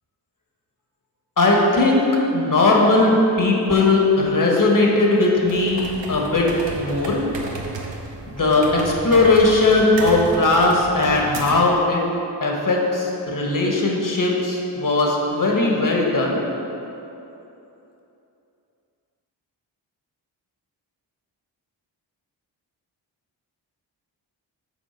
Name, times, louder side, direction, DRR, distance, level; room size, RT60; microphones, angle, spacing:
voice 1, 1.4-2.1 2.3-7.2 8.3-12.0 12.4-16.4, left 2 dB, 45° left, -1 dB, 1.5 m, -18 dB
sound 1, 5.4-11.8, right 2 dB, 70° right, 0.9 m, -34 dB
6.4 x 4.3 x 5.8 m, 2.9 s
cardioid pair, 50°, 46 cm